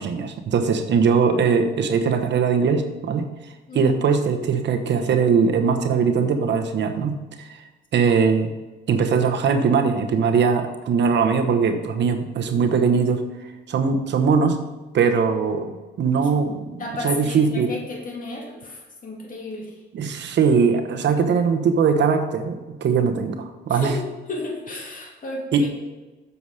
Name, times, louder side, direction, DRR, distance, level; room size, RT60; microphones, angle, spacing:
voice 1, 0.0-3.3 3.7-7.6 7.9-8.5 8.9-13.2 13.7-14.7 14.9-17.7 19.9-23.9 25.5-25.7, right 5 dB, 65° right, 6 dB, 1.0 m, -21 dB
voice 2, 3.7-4.1 7.9-8.1 16.8-19.7 23.7-25.7, left 2 dB, 40° left, -1 dB, 2.5 m, -33 dB
7.2 x 6.9 x 4.8 m, 1.2 s
cardioid pair, 90°, 20 cm